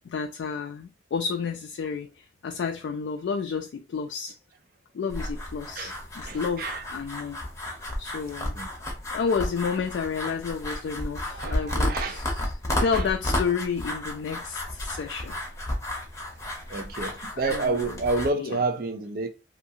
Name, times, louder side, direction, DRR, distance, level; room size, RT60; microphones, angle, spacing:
voice 1, 0.0-4.4 4.9-7.4 8.0-8.6 9.1-12.5 12.8-15.4 17.5-18.0 18.4-18.6, left 5 dB, 75° left, 0.3 m, -31 dB
sound 1, 5.1-18.3, left 1 dB, 15° left, 0.7 m, -32 dB
voice 2, 6.3-6.8 8.5-8.7 11.3-12.2 12.9-13.0 16.7-19.3, right 3 dB, 50° right, 0.4 m, -29 dB
2.7 x 2.4 x 2.7 m
head